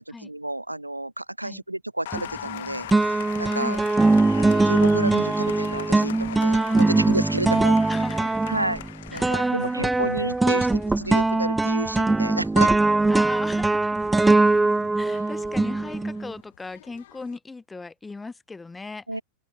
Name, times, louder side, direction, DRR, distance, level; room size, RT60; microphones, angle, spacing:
voice 1, 0.0-3.8 4.4-7.8 8.5-8.8 9.1-12.7 19.1-19.2, right 1 dB, 85° right, 1.0 m, -31 dB
Applause, 2.0-17.4, left 14 dB, 55° left, 1.1 m, -42 dB
sound 1, 2.1-2.6 2.9-16.3, right 2 dB, 10° right, 0.4 m, -21 dB
voice 2, 3.5-3.9 7.9-8.5 9.1-10.8 13.1-14.0 14.9-19.2, left 3 dB, 10° left, 1.2 m, -38 dB
figure-of-eight pair, 90°, 0 cm